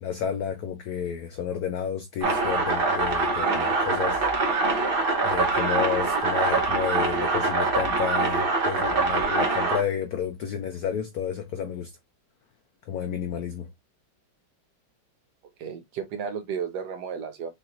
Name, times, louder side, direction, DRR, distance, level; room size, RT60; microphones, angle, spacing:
voice 1, 0.0-4.2 5.2-11.9 12.9-13.7, left 8 dB, 85° left, 0.8 m, -31 dB
sound 1, 2.2-9.8, right 3 dB, 40° right, 0.9 m, -24 dB
voice 2, 15.6-17.5, right 7 dB, 70° right, 1.1 m, -33 dB
6.7 x 3.0 x 2.4 m
omnidirectional pair, 2.2 m